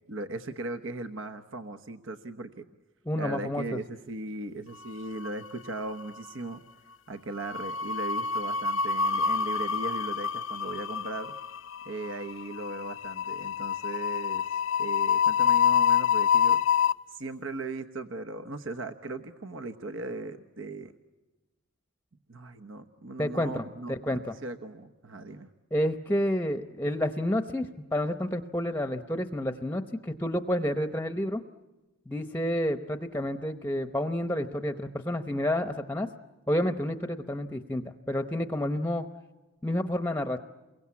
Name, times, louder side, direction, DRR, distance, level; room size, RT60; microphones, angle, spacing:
voice 1, 0.1-2.6 3.1-6.6 7.1-11.4 11.8-16.6 17.1-20.9 22.3-25.5, right 2 dB, 70° right, 9 dB, 1.1 m, -38 dB
voice 2, 3.1-3.8 23.2-24.3 25.7-31.4 32.1-36.1 36.5-39.1 39.6-40.4, left 1 dB, 10° left, 9 dB, 0.8 m, -30 dB
sound 1, 4.9-5.7 5.9-6.2 7.4-16.9, left 7 dB, 75° left, 0.8 m, -27 dB
29.0 x 23.0 x 8.5 m, 1.1 s
head